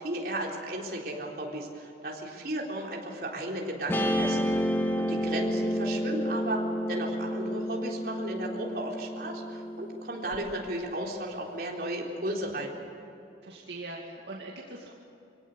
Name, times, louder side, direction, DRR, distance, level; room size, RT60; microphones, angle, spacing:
voice 1, 0.0-6.6 6.9-12.8, right 1 dB, 55° right, -1 dB, 3.9 m, -35 dB
Guitar, 3.9-10.4, equal, 15° left, 1.6 m, -30 dB
voice 2, 5.2-5.5 13.4-14.9, right 2 dB, 75° right, -2 dB, 2.4 m, -42 dB
24.5 x 17.5 x 8.0 m, 2.9 s
head